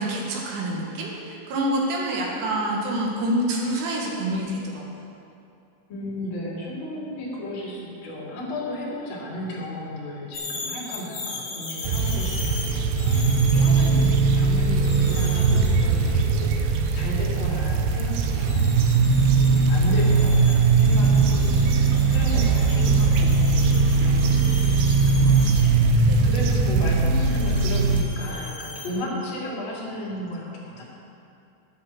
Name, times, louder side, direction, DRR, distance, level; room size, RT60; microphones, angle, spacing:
voice 1, 0.0-4.8 13.5-13.7 26.1-26.2, right 1 dB, 65° right, -2 dB, 3.2 m, -27 dB
voice 2, 5.9-18.8 19.1-30.8, left 1 dB, 35° left, -6 dB, 2.4 m, -34 dB
sound 1, 10.3-16.2 18.3-25.7 27.2-28.9, left 3 dB, 80° left, 1.1 m, -38 dB
sound 2, 11.8-28.0, right 4 dB, 85° right, 2.5 m, -20 dB
9.9 x 8.4 x 7.0 m, 2.6 s
omnidirectional pair, 6.0 m